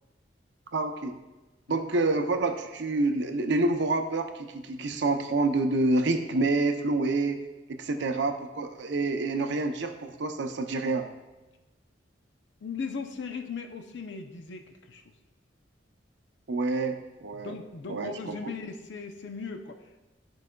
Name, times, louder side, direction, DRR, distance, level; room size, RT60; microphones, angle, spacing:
voice 1, 0.7-1.2 1.7-7.4 7.7-11.1 16.5-17.5 17.9-18.3, right 2 dB, 65° right, 6 dB, 0.6 m, -27 dB
voice 2, 12.6-15.1 17.3-20.1, left 4 dB, 65° left, 6 dB, 0.5 m, -38 dB
13.0 x 4.7 x 2.2 m, 1.1 s
head